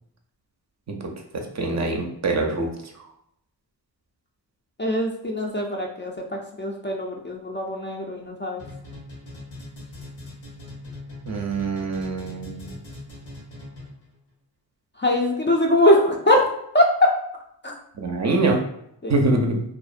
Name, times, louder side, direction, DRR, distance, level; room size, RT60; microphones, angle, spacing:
voice 1, 1.3-2.7 11.2-12.8 18.0-18.6 19.1-19.6, right 2 dB, 40° right, 2 dB, 0.5 m, -24 dB
voice 2, 4.8-8.6 15.0-16.4 16.7-17.1 17.6-17.7 19.0-19.1, left 1 dB, 25° left, 0 dB, 0.4 m, -21 dB
sound 1, 8.6-14.1, left 2 dB, 85° left, 1.0 m, -40 dB
2.5 x 2.0 x 2.4 m, 0.75 s
cardioid pair, 50°, 44 cm